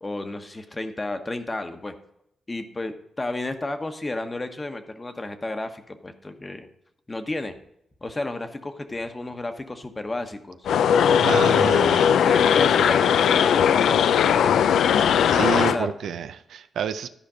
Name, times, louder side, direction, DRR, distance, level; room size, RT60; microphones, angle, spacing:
voice 1, 0.0-1.9 2.5-6.7 7.1-7.5 8.0-10.6 11.4-11.8 12.2-14.6 15.3-15.9, left 2 dB, 25° left, 7 dB, 1.0 m, -32 dB
sound 1, 10.7-15.8, left 8 dB, 80° left, 0.4 m, -19 dB
voice 2, 11.2-12.1 15.3-17.1, right 8 dB, 80° right, 11 dB, 0.5 m, -29 dB
12.0 x 5.0 x 4.9 m, 0.78 s
cardioid pair, 75°, 0 cm